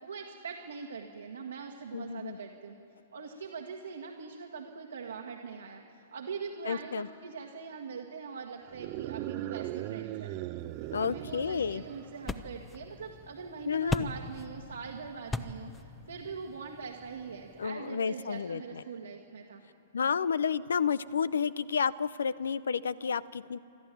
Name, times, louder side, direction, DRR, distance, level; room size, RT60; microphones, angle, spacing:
voice 1, 0.0-2.7 3.1-10.3 11.0-19.6, right 5 dB, 75° right, 0 dB, 1.7 m, -42 dB
voice 2, 1.9-2.4 6.6-7.1 10.9-11.8 13.7-14.1 17.6-18.8 19.9-23.6, left 6 dB, 75° left, 20 dB, 0.6 m, -31 dB
sound 1, 8.7-12.3, right 15 dB, 40° right, 0.7 m, -39 dB
sound 2, 10.6-17.7, left 3 dB, 15° left, 0.9 m, -41 dB
27.5 x 13.0 x 9.2 m, 2.9 s
figure-of-eight pair, 110°, 0 cm